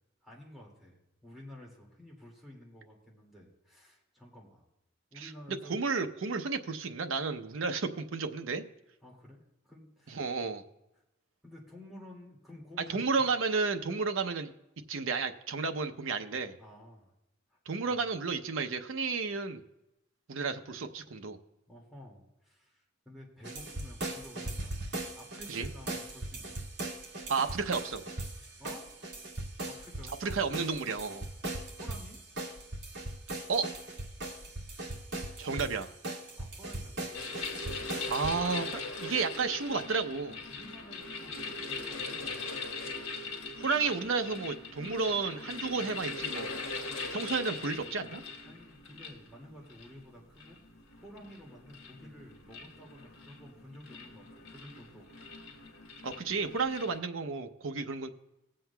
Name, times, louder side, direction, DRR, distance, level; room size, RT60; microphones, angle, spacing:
voice 1, 0.2-4.6 5.1-5.8 9.0-10.2 11.4-13.3 16.6-17.1 17.5-17.6 17.9-18.0 21.7-26.6 28.6-28.9 29.7-30.4 31.8-32.2 36.4-37.4 40.5-42.6 43.4-43.5 48.5-50.6 51.0-55.3 55.5-55.8 56.2-56.4, left 1 dB, ahead, -4 dB, 2.1 m, -52 dB
voice 2, 5.7-8.6 10.1-10.6 12.9-14.5 14.9-16.5 17.7-19.6 20.3-21.4 25.5-25.7 27.3-28.0 30.2-31.3 33.5-33.7 35.4-35.9 38.1-38.7 39.0-40.4 43.6-46.5 47.1-48.2 56.0-58.1, right 4 dB, 85° right, 6 dB, 0.7 m, -32 dB
sound 1, 23.4-38.3, right 2 dB, 60° right, 1.9 m, -39 dB
sound 2, 37.1-57.0, left 3 dB, 80° left, 1.5 m, -41 dB
20.5 x 7.6 x 2.2 m, 0.91 s
head